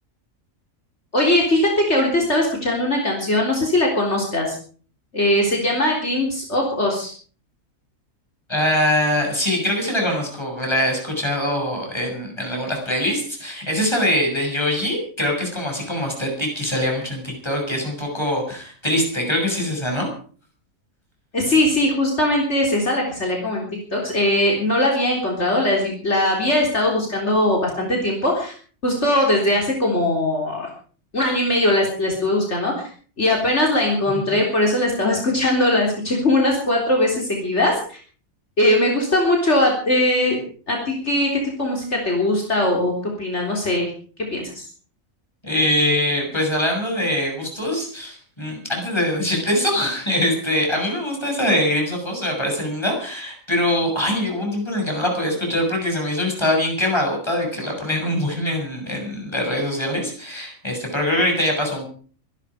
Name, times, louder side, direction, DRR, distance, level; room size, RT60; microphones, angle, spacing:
voice 1, 1.1-4.6 5.1-7.1 21.3-28.5 28.8-30.7 31.1-32.9 33.2-38.0 38.6-40.4 40.7-41.3 41.6-43.9 44.3-44.7, left 1 dB, 55° left, -1 dB, 4.1 m, -20 dB
voice 2, 8.5-20.1 34.3-34.4 45.4-61.8, left 1 dB, 20° left, 1 dB, 7.1 m, -23 dB
24.5 x 12.0 x 5.0 m, 0.43 s
omnidirectional pair, 1.4 m